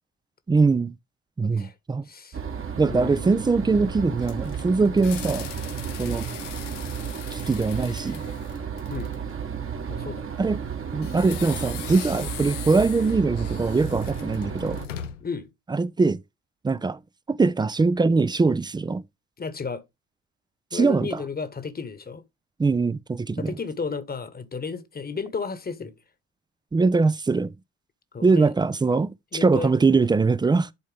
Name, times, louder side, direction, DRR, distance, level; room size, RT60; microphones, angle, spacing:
voice 1, 0.5-0.9 1.4-2.0 2.8-5.5 6.0-6.4 7.3-8.2 10.4-10.6 10.9-14.8 15.7-16.2 16.6-17.0 17.3-19.0 20.7-21.1 22.6-23.5 26.7-27.5 28.2-29.1 29.4-30.7, right 4 dB, 10° right, 0.5 m, -22 dB
voice 2, 1.4-1.7 2.0-2.4 2.9-3.3 8.9-9.1 9.9-10.3 15.2-15.5 19.4-19.8 20.7-22.2 23.4-25.9 28.1-28.5 29.3-29.7, left 5 dB, 25° left, 1.2 m, -33 dB
sound 1, 2.3-14.9, right 7 dB, 35° right, 1.4 m, -33 dB
sound 2, 3.9-9.3 11.0-15.4, left 10 dB, 85° left, 0.6 m, -40 dB
11.0 x 4.2 x 3.3 m
figure-of-eight pair, 50°, 36 cm